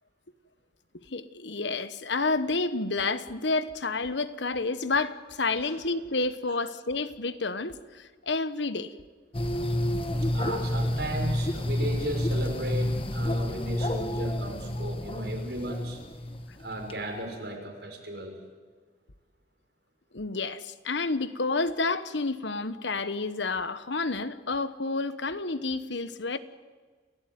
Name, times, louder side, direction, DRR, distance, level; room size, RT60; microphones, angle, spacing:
voice 1, 0.9-8.9 20.1-26.4, left 3 dB, 75° left, 1.2 m, -30 dB
sound 1, 9.3-17.0, left 1 dB, 30° left, 1.4 m, -29 dB
voice 2, 10.2-16.0 16.6-18.4, right 1 dB, 65° right, 5.9 m, -35 dB
29.5 x 17.0 x 9.5 m
head